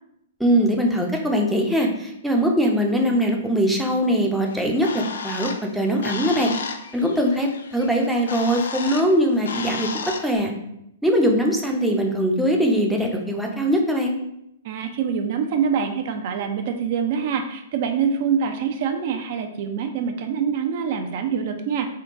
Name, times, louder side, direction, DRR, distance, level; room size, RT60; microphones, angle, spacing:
voice 1, 0.4-6.5 6.9-10.5 11.0-14.1, equal, ahead, 0 dB, 0.6 m, -21 dB
Bird, 4.5-10.4, left 5 dB, 75° left, 0.4 m, -33 dB
voice 2, 14.6-21.9, right 7 dB, 50° right, 5 dB, 0.5 m, -25 dB
3.8 x 2.2 x 3.6 m, 0.78 s
hypercardioid pair, 125°, 0 cm